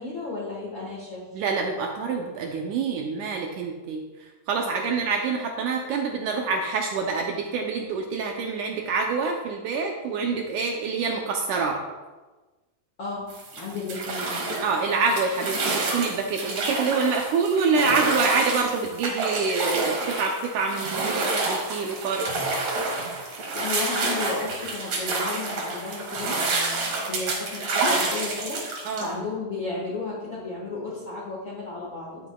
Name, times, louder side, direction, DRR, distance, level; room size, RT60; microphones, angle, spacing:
voice 1, 0.0-1.2 4.8-5.0 13.0-13.3 13.6-14.4 23.5-32.3, left 3 dB, 50° left, -4 dB, 1.6 m, -33 dB
voice 2, 1.3-4.0 4.5-11.8 14.6-22.3 28.9-29.1, right 4 dB, 75° right, 2 dB, 1.9 m, -26 dB
sound 1, 13.3-29.1, right 3 dB, 60° right, 2.7 m, -28 dB
10.5 x 8.5 x 2.3 m, 1.2 s
omnidirectional pair, 4.0 m